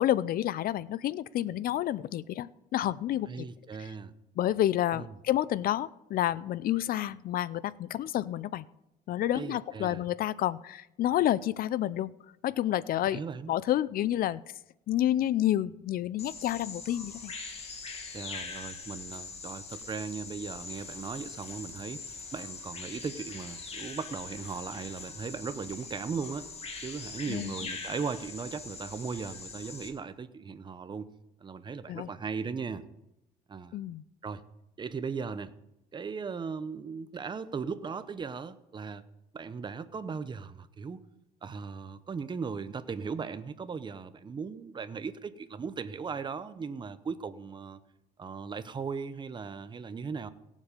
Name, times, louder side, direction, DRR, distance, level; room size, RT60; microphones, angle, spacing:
voice 1, 0.0-3.5 4.4-8.6 9.1-12.1 12.4-13.2 13.5-14.4 14.9-17.3 27.3-27.5 31.9-32.1 33.7-34.0, left 12 dB, 60° left, 19 dB, 0.5 m, -29 dB
voice 2, 3.3-4.1 4.9-5.1 9.3-10.1 13.1-13.5 18.1-22.0 22.3-26.5 26.8-31.1 31.4-32.8 33.5-33.8 34.2-34.4 34.8-35.5 35.9-39.0 39.3-41.0 41.4-47.8 48.2-50.3, right 5 dB, 25° right, 12 dB, 0.8 m, -38 dB
Bird vocalization bird call bird song, 16.2-29.9, left 4 dB, 35° left, 2.1 m, -42 dB
17.0 x 7.4 x 5.2 m, 0.89 s
cardioid pair, 110°, 17 cm